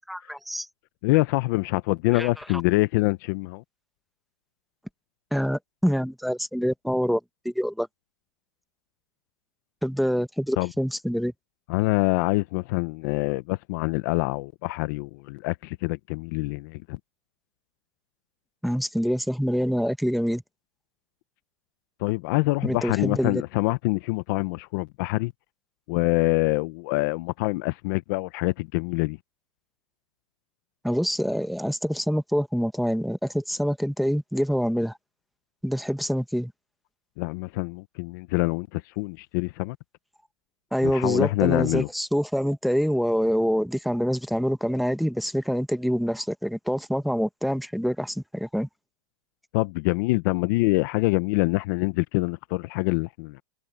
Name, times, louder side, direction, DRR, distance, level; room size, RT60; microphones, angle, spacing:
voice 1, 0.1-0.7 2.1-2.3 5.3-7.2 7.4-7.9 9.8-11.3 18.6-20.4 22.6-23.4 30.8-35.0 35.6-36.5 40.7-48.7, equal, ahead, 0.9 m, -26 dB
voice 2, 1.0-3.6 10.6-10.7 11.7-17.0 22.0-25.3 25.9-29.2 37.2-39.8 40.8-41.9 49.5-53.4, left 22 dB, 40° left, 0.6 m, -25 dB
supercardioid pair, 160°, 16 cm